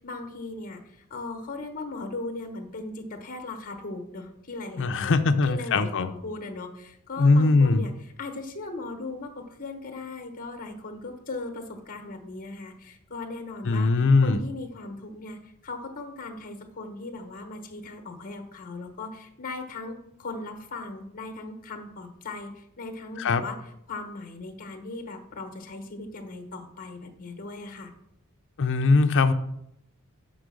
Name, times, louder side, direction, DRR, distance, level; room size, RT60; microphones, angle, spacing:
voice 1, 0.0-5.1 5.4-23.6 23.9-27.9, left 3 dB, 40° left, 5 dB, 1.1 m, -38 dB
voice 2, 4.8-6.1 7.2-7.8 13.7-14.4 23.2-23.4 28.6-29.3, left 3 dB, 55° left, 8 dB, 0.5 m, -21 dB
6.0 x 4.9 x 6.3 m, 0.79 s
head